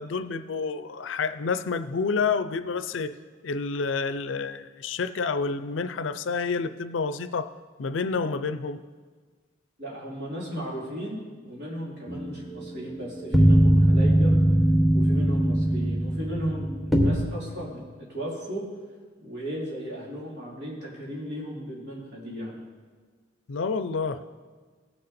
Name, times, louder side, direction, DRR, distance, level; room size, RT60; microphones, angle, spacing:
voice 1, 0.0-3.1 3.4-7.5 7.8-8.8 23.5-24.2, left 4 dB, 85° left, 13 dB, 0.5 m, -29 dB
voice 2, 9.8-14.4 14.9-17.8 18.1-18.6 19.2-22.6, equal, 60° right, -5 dB, 3.4 m, -35 dB
sound 1, 12.1-17.1, right 1 dB, ahead, 1.1 m, -21 dB
17.5 x 6.7 x 4.3 m, 1.5 s
head